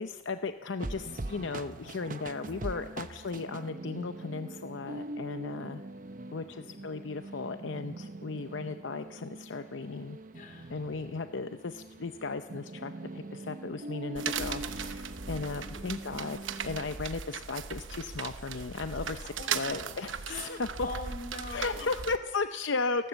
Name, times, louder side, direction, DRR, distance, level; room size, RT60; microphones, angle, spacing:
voice 1, 0.0-5.8 6.3-10.2 10.7-20.9 21.5-23.1, left 4 dB, 75° left, 9 dB, 0.7 m, -36 dB
sound 1, 0.8-16.9, right 2 dB, 45° right, 0.8 m, -43 dB
voice 2, 6.3-6.8 10.3-10.8 15.5-15.9 19.1-21.9, left 2 dB, 45° left, 6 dB, 3.2 m, -44 dB
sound 2, 14.2-22.2, right 7 dB, 90° right, 1.0 m, -38 dB
29.5 x 12.5 x 8.0 m, 1.2 s
head